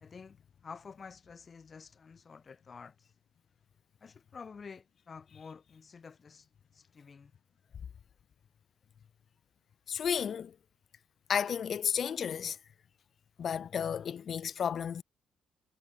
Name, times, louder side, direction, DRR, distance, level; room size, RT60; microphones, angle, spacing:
voice 1, 0.0-3.2 4.0-7.3, left 5 dB, 40° left, 0.9 m, -50 dB
voice 2, 9.9-10.5 11.3-12.6 13.4-15.0, left 8 dB, 55° left, 0.3 m, -32 dB
cardioid pair, 90°, 0 cm